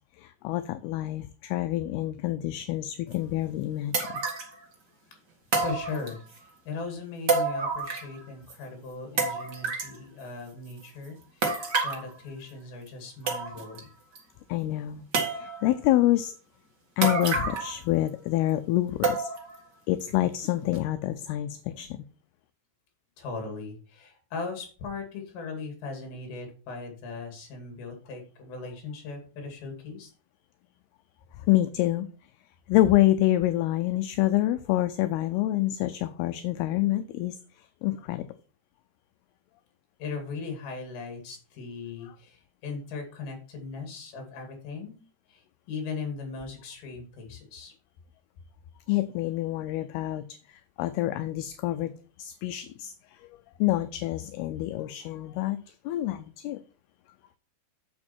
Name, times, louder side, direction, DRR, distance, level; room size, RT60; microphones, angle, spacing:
voice 1, 0.2-4.2 14.5-16.3 17.0-19.3 19.9-22.0 31.5-32.1 32.7-37.4 37.8-38.3 48.9-50.3 50.8-51.9 52.2-52.9 53.2-53.3 53.6-55.6 55.9-56.6, left 15 dB, 80° left, 11 dB, 2.3 m, -27 dB
sound 1, 3.1-3.2 3.9-4.5 5.5-6.4 7.3-8.2 8.5-8.6 9.2-10.0 11.4-12.1 12.9-13.0 13.3-13.8 14.2-14.3 15.1-15.7 17.0-17.8 18.1-18.2 19.0-19.6 20.0-20.1 20.7-20.8, right 4 dB, 65° right, 1.0 m, -28 dB
voice 2, 5.5-13.9 23.2-30.1 40.0-45.0 45.3-47.7, left 4 dB, 60° left, 3 dB, 4.1 m, -38 dB
8.7 x 7.3 x 4.3 m, 0.38 s
omnidirectional pair, 4.9 m